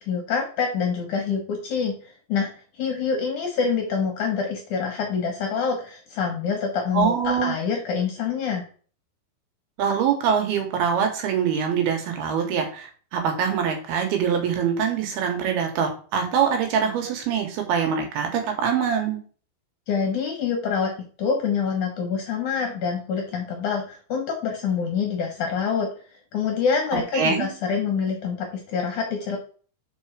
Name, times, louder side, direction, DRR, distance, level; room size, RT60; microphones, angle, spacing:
voice 1, 0.1-2.5 2.7-8.7 19.9-20.9 21.2-25.9 26.3-29.4, left 6 dB, 70° left, 3 dB, 1.9 m, -26 dB
voice 2, 6.9-7.6 9.8-19.2 27.1-27.5, right 7 dB, 80° right, 4 dB, 3.1 m, -24 dB
5.1 x 4.8 x 4.9 m, 0.41 s
omnidirectional pair, 4.5 m